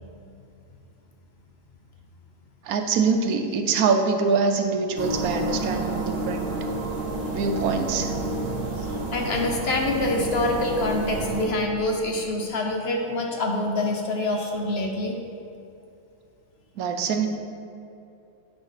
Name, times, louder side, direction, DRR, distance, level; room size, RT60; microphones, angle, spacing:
voice 1, 2.6-6.5 7.3-8.1 16.8-17.3, right 5 dB, 80° right, 6 dB, 1.2 m, -24 dB
sound 1, 5.0-11.4, right 2 dB, 55° right, 1.3 m, -29 dB
voice 2, 8.8-15.2, left 2 dB, 50° left, 1 dB, 1.0 m, -26 dB
9.6 x 4.1 x 5.7 m, 2.7 s
omnidirectional pair, 1.5 m